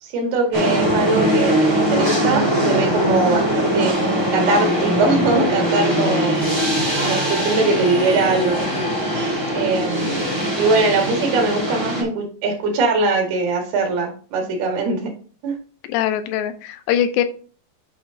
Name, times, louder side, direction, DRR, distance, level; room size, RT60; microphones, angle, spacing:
voice 1, 0.0-4.0 4.3-6.4 7.0-8.9 9.5-10.2 10.5-15.1 15.4-15.6, right 3 dB, 65° right, 1 dB, 3.7 m, -21 dB
sound 1, 0.5-12.0, equal, 10° right, 1.1 m, -21 dB
voice 2, 15.9-17.2, left 10 dB, 80° left, 10 dB, 2.9 m, -21 dB
8.6 x 4.9 x 3.9 m, 0.41 s
omnidirectional pair, 5.1 m